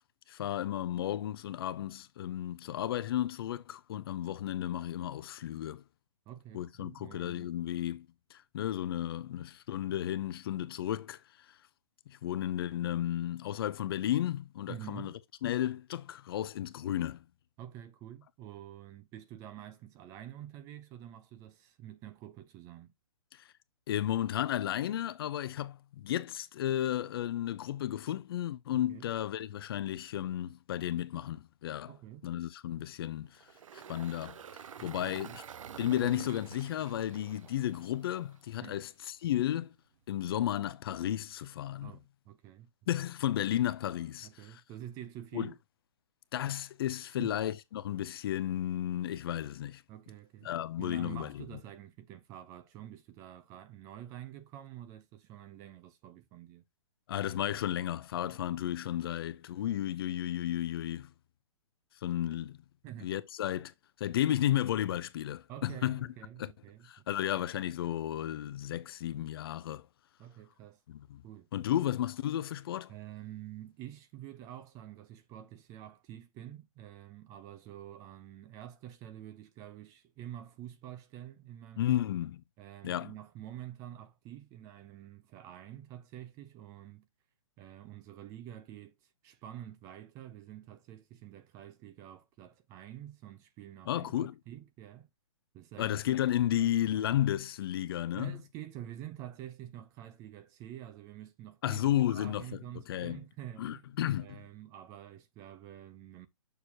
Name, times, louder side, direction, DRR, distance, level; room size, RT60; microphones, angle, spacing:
voice 1, 0.3-5.8 6.5-8.1 8.3-11.2 12.1-15.1 15.4-17.2 23.3-23.4 23.9-31.9 32.2-33.4 33.7-34.4 34.8-35.4 35.8-39.7 40.1-41.9 42.9-44.3 45.3-45.5 46.3-49.8 50.4-51.4 57.1-61.1 62.0-62.6 63.0-63.7 64.0-66.1 66.4-66.5 66.8-69.9 70.9-71.2 71.5-72.9 81.8-82.4 82.8-83.1 93.9-94.3 95.8-98.3 101.6-102.4 102.9-103.2 103.6-104.4, left 12 dB, 45° left, 0.7 m, -33 dB
voice 2, 6.3-7.5 14.7-15.2 17.6-22.9 28.7-29.1 31.9-32.3 34.8-35.4 38.6-38.8 41.8-42.7 42.9-43.0 44.2-45.6 47.2-47.3 49.9-50.5 50.8-56.6 58.5-58.6 62.8-63.1 65.5-67.2 70.2-70.8 71.2-71.5 72.9-82.0 82.6-87.1 87.6-95.1 95.5-96.0 96.6-96.8 98.2-103.8 104.1-106.3, right 12 dB, 20° right, 0.5 m, -48 dB
Engine, 33.3-38.6, right 8 dB, 70° right, 0.6 m, -48 dB
6.9 x 6.5 x 2.9 m
hypercardioid pair, 150°, 17 cm